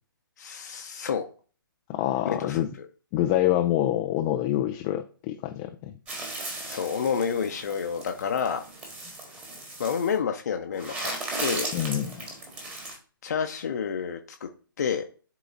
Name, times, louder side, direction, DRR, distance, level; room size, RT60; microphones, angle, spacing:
voice 1, 0.4-1.3 2.3-2.9 6.7-8.6 9.8-11.1 11.4-11.7 13.2-14.5 14.8-15.0, left 6 dB, 50° left, 4 dB, 0.7 m, -29 dB
voice 2, 1.9-2.7 3.1-5.9 11.7-12.2, left 12 dB, 15° left, 6 dB, 0.3 m, -26 dB
sound 1, 6.1-10.1 10.7-13.0, right 2 dB, 15° right, 1.4 m, -36 dB
11.5 x 3.9 x 2.6 m, 0.38 s
figure-of-eight pair, 130°, 12 cm